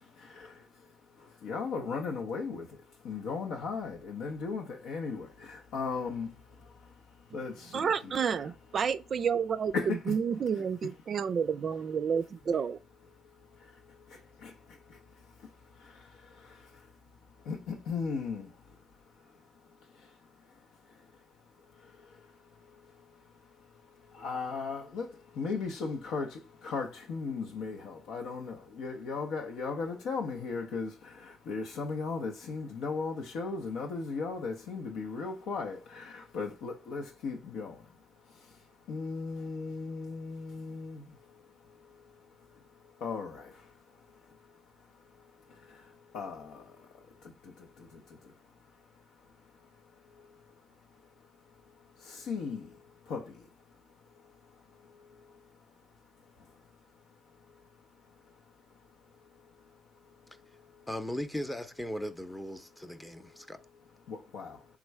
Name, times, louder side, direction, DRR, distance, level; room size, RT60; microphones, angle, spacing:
voice 1, 1.4-2.7 3.0-6.3 7.3-8.1 9.7-10.1 14.4-14.5 17.5-18.5 24.2-25.1 25.4-26.4 26.6-30.9 31.5-37.7 38.9-41.0 43.0-43.4 46.1-46.6 52.1-52.6 53.1-53.2 64.1-64.6, left 4 dB, 85° left, 0.6 m, -36 dB
voice 2, 7.7-12.8, right 7 dB, 55° right, 0.3 m, -30 dB
voice 3, 60.9-63.6, left 1 dB, 10° left, 0.6 m, -38 dB
3.6 x 3.1 x 4.6 m
cardioid pair, 90°, 0 cm